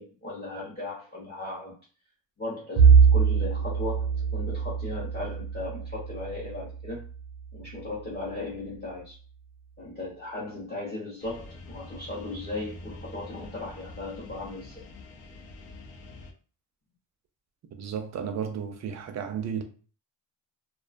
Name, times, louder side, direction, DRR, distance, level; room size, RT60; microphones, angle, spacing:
voice 1, 0.0-1.7 2.4-7.0 7.5-9.2 9.8-14.8, left 2 dB, 25° left, 0.7 m, -37 dB
Bowed string instrument, 2.8-7.3, right 6 dB, 80° right, 0.7 m, -23 dB
sound 1, 11.2-16.3, left 2 dB, 60° left, 0.5 m, -45 dB
voice 2, 17.7-19.6, right 7 dB, 40° right, 0.4 m, -33 dB
2.3 x 2.2 x 2.4 m
cardioid pair, 125°, 42 cm